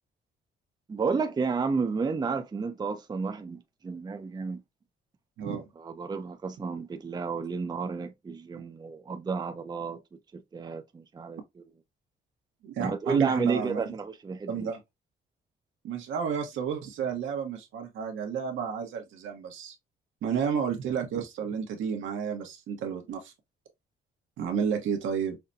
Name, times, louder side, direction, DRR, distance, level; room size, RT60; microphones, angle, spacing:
voice 1, 0.9-4.6 5.8-11.6 12.8-14.7, right 5 dB, 20° right, 0.5 m, -32 dB
voice 2, 12.6-13.9 14.5-14.8 15.8-19.7 20.2-23.3 24.4-25.4, right 7 dB, 80° right, 1.1 m, -31 dB
5.7 x 2.2 x 2.6 m
cardioid pair, 90°, 20 cm